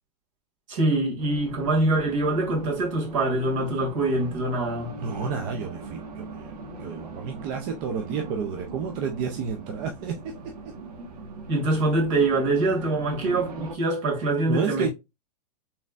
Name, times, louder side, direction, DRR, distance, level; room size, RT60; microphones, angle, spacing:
voice 1, 0.7-4.9 11.5-14.9, right 2 dB, 50° right, 2.2 m, -24 dB
Race car auto racing, 1.2-13.8, right 3 dB, 75° right, 1.2 m, -40 dB
voice 2, 5.0-6.5 6.8-10.3 14.5-14.9, right 6 dB, 25° right, 0.4 m, -30 dB
4.3 x 3.5 x 2.4 m
supercardioid pair, 165°, 20 cm